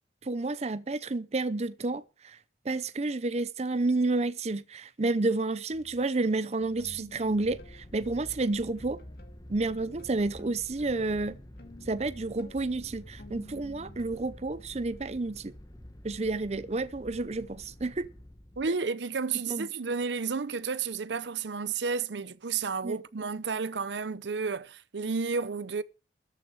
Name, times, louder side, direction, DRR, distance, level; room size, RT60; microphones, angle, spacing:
voice 1, 0.2-2.4 2.6-9.0 9.5-11.4 11.9-15.5 16.0-18.1 19.5-19.7 22.8-23.0, right 2 dB, 40° right, 0.6 m, -30 dB
sound 1, 5.7-6.0 6.6-8.4 8.8-14.4, left 1 dB, 60° left, 2.1 m, -50 dB
sound 2, 7.4-18.7, left 1 dB, 20° left, 1.3 m, -50 dB
voice 2, 18.6-25.8, right 5 dB, 80° right, 0.7 m, -31 dB
13.5 x 6.5 x 7.4 m
head